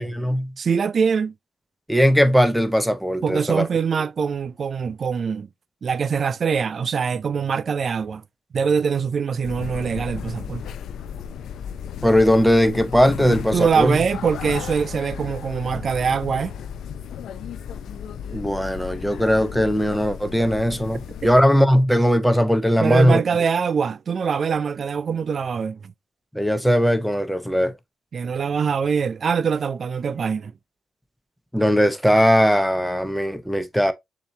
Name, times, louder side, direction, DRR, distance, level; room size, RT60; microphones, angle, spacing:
voice 1, 0.0-0.5 1.9-3.7 12.0-14.0 18.3-23.2 26.3-27.7 31.5-33.9, equal, ahead, 0.7 m, -19 dB
voice 2, 0.6-1.3 3.2-5.5 5.8-8.2 8.5-10.6 13.5-16.5 22.8-25.9 28.1-30.5, right 6 dB, 45° right, 0.3 m, -23 dB
sound 1, 9.4-21.4, left 8 dB, 70° left, 0.4 m, -34 dB
6.9 x 2.8 x 2.7 m
cardioid pair, 90°, 0 cm